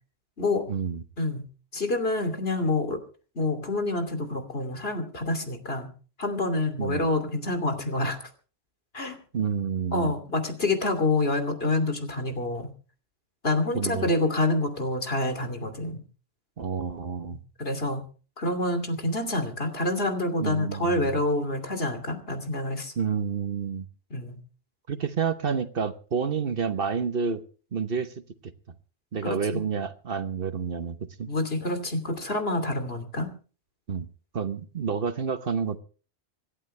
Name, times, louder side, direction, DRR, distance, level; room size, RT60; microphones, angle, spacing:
voice 1, 0.7-1.0 6.8-7.0 9.3-10.1 13.7-14.1 16.6-17.4 20.4-21.2 23.0-23.9 24.9-27.4 27.7-28.1 28.4-28.5 29.1-31.3 33.9-34.1 34.3-35.8, right 6 dB, 60° right, 11 dB, 1.2 m, -29 dB
voice 2, 1.7-3.0 3.3-5.9 6.2-8.2 8.9-9.2 9.9-12.7 13.4-16.0 17.6-18.0 18.4-22.9 24.1-24.4 29.2-29.6 31.3-33.3, left 2 dB, 65° left, 7 dB, 3.1 m, -27 dB
27.0 x 11.5 x 3.3 m, 0.38 s
omnidirectional pair, 1.1 m